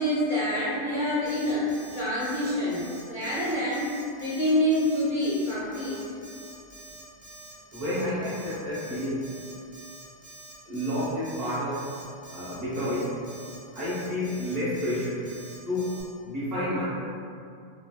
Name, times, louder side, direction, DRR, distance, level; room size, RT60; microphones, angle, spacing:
voice 1, 0.0-3.9 4.2-6.0, left 1 dB, 45° left, -10 dB, 0.6 m, -27 dB
Alarm, 1.2-16.0, right 2 dB, 30° right, 0.5 m, -47 dB
voice 2, 7.7-9.3 10.6-11.8 12.3-13.2 13.7-15.3 15.6-16.8, left 1 dB, 50° right, -14 dB, 0.9 m, -30 dB
3.2 x 3.0 x 2.2 m, 2.4 s
omnidirectional pair, 1.6 m